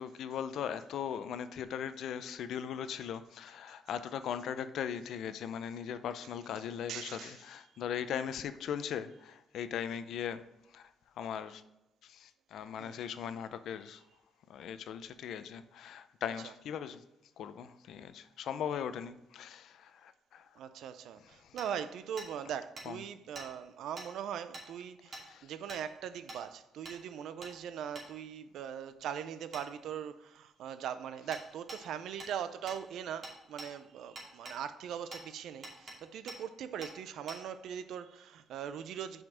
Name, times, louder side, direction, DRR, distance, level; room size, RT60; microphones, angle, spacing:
voice 1, 0.0-10.4 10.7-10.8 11.2-11.6 12.0-14.0 14.5-17.0 17.4-20.4 22.9-23.0 25.3-25.5, left 8 dB, 75° left, 0.5 m, -39 dB
voice 2, 6.6-7.5 12.8-13.0 16.4-16.5 20.5-39.2, right 8 dB, 80° right, 0.5 m, -41 dB
Hammer, 21.6-21.7 22.2-22.3 22.8-22.9 23.3-23.5 24.0-24.1 24.5-24.7 25.1-25.2 25.7-25.8 26.3-26.4 26.8-27.0 27.4-27.5 27.9-28.1 29.5-29.6 31.3-31.4 31.7-31.8 32.2-32.3 32.7-32.8 33.2-33.7 34.2-34.6 35.1-35.2 35.6-36.0 36.3-36.4 36.8-36.9 37.3-37.4, right 2 dB, 35° right, 2.4 m, -45 dB
6.0 x 5.1 x 6.3 m
cardioid pair, 105°, 0 cm